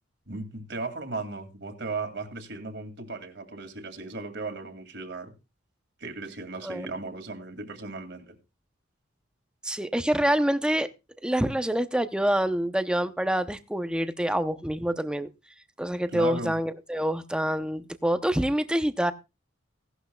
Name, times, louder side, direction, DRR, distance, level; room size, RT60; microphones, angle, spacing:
voice 1, 0.3-5.3 6.0-8.4 16.1-16.6, right 3 dB, 65° right, 2.2 m, -36 dB
voice 2, 9.6-10.9 11.2-15.3 15.8-19.1, equal, 5° right, 0.7 m, -26 dB
17.0 x 11.5 x 2.3 m
head